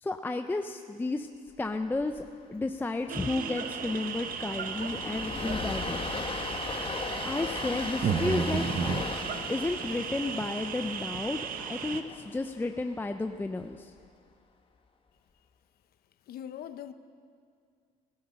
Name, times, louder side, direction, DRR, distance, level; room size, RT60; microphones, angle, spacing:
voice 1, 0.0-1.3 1.6-6.0 7.2-8.6 9.5-13.9, left 2 dB, 10° left, 7 dB, 0.5 m, -32 dB
Train, 1.9-2.2 2.5-2.6 3.0-13.2, left 4 dB, 30° left, 1.3 m, -38 dB
sound 1, 3.1-12.0, right 7 dB, 55° right, 1.0 m, -37 dB
sound 2, 8.0-9.1 10.4-10.5 11.1-11.2, right 6 dB, 40° right, 0.6 m, -29 dB
voice 2, 16.3-16.9, left 10 dB, 65° left, 11 dB, 0.8 m, -41 dB
15.5 x 15.0 x 5.8 m, 2.2 s
cardioid pair, 110°, 17 cm